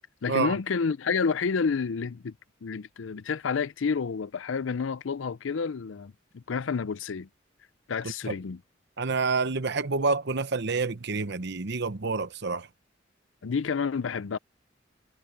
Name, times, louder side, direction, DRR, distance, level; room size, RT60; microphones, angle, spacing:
voice 1, 0.2-2.3 2.6-7.3 7.9-8.6 13.4-14.4, left 5 dB, 90° left, 0.5 m, -29 dB
voice 2, 9.0-12.7, right 4 dB, 60° right, 1.0 m, -28 dB
head